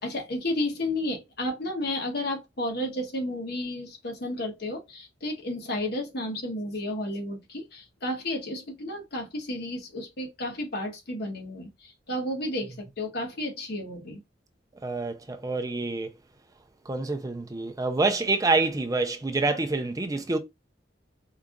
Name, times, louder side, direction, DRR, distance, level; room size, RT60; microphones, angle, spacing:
voice 1, 0.0-14.2, left 1 dB, 60° left, 1.4 m, -32 dB
voice 2, 14.8-16.1 16.9-20.4, right 3 dB, 20° right, 0.5 m, -27 dB
4.7 x 2.4 x 3.7 m
head